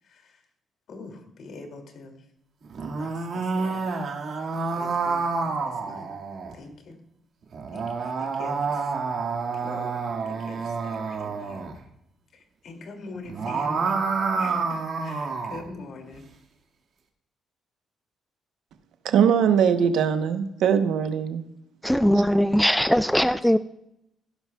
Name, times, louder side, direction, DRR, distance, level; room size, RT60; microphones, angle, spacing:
voice 1, 0.0-0.5 0.9-2.3 3.0-4.0 4.7-6.2 6.5-7.0 7.7-9.0 9.6-10.0 10.3-11.7 12.3-14.0 14.4-16.2, left 3 dB, 65° left, 2.5 m, -43 dB
sound 1, 2.7-6.5 7.5-11.7 13.2-15.7, right 4 dB, 60° right, 1.8 m, -28 dB
voice 2, 19.0-21.4, right 7 dB, 80° right, 0.9 m, -21 dB
voice 3, 21.8-23.6, equal, ahead, 0.3 m, -20 dB
15.5 x 11.5 x 2.3 m
cardioid pair, 90°, 0 cm